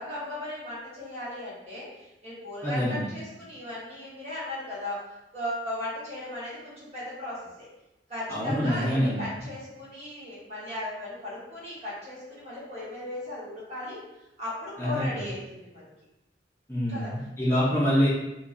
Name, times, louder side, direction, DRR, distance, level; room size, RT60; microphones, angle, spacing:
voice 1, 0.0-5.0 5.3-7.6 8.1-14.0 14.4-15.8 16.9-17.1 17.5-17.6, left 1 dB, 35° right, -9 dB, 1.0 m, -37 dB
voice 2, 2.6-3.0 8.3-9.2 14.8-15.2 16.7-18.1, equal, 15° left, -9 dB, 0.7 m, -25 dB
2.5 x 2.2 x 2.5 m, 0.94 s
head